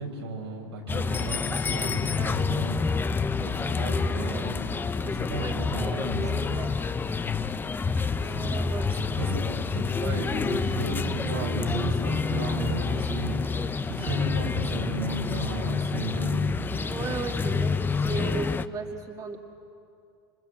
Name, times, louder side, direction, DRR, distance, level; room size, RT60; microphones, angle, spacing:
voice 1, 0.0-3.0 3.3-6.8 8.2-8.6 8.9-9.4 9.7-17.3, right 2 dB, 85° right, 0 dB, 6.8 m, -35 dB
sound 1, 0.9-18.6, left 4 dB, 15° left, 0.8 m, -28 dB
voice 2, 5.3-6.7 8.2-8.9 13.5-13.8 16.8-19.4, right 4 dB, 25° right, 2 dB, 2.1 m, -36 dB
27.0 x 25.5 x 8.4 m, 2.5 s
hypercardioid pair, 105°, 13 cm